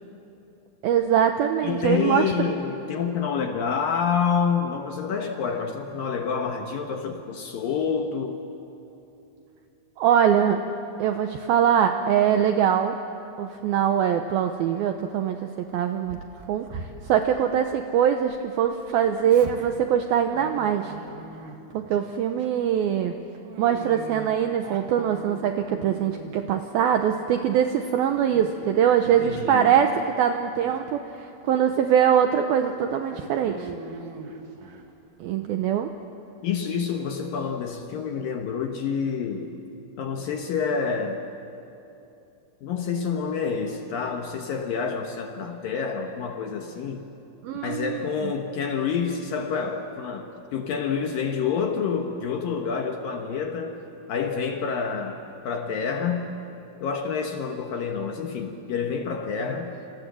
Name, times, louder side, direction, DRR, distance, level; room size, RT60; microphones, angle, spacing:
voice 1, 0.8-2.3 10.0-10.6 11.0-13.0 13.4-15.4 15.7-16.2 16.5-20.9 21.7-23.1 23.6-29.9 30.2-33.7 35.2-35.9 47.4-48.3, right 9 dB, 80° right, 6 dB, 2.2 m, -23 dB
voice 2, 1.6-8.4 29.0-29.8 36.4-39.5 40.0-41.2 42.6-47.1 47.5-53.8 54.1-56.4 56.8-59.7, left 6 dB, 65° left, 4 dB, 2.4 m, -28 dB
Dog, 16.1-18.4 18.6-22.0 22.4-22.7 23.4-26.6 27.0-27.7 28.1-28.5 28.9-30.1 30.5-30.8 31.4-31.5 31.9-32.0 32.6-34.9, right 4 dB, 55° right, 2.8 m, -41 dB
27.5 x 27.0 x 7.6 m, 2.8 s
omnidirectional pair, 5.4 m